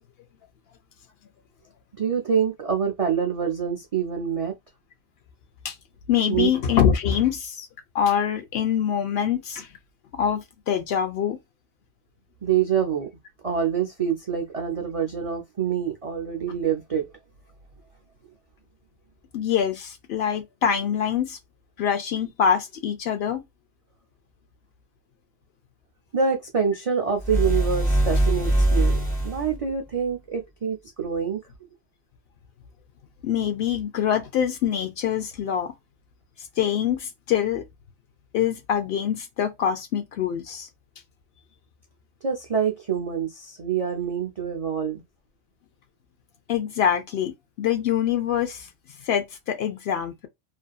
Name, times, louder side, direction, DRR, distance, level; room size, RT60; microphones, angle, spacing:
voice 1, 2.0-4.5 6.3-6.5 12.4-13.1 13.4-17.1 26.1-29.0 29.2-31.4 42.2-45.0, right 7 dB, 65° right, 0.3 m, -26 dB
voice 2, 6.1-7.7 7.9-9.7 10.2-11.4 19.3-21.4 21.8-23.4 33.2-35.7 36.6-37.6 38.3-40.7 46.5-48.7 49.1-50.3, left 8 dB, 65° left, 0.7 m, -24 dB
sound 1, 27.2-29.6, right 1 dB, 5° left, 0.9 m, -22 dB
2.7 x 2.3 x 2.3 m
omnidirectional pair, 1.2 m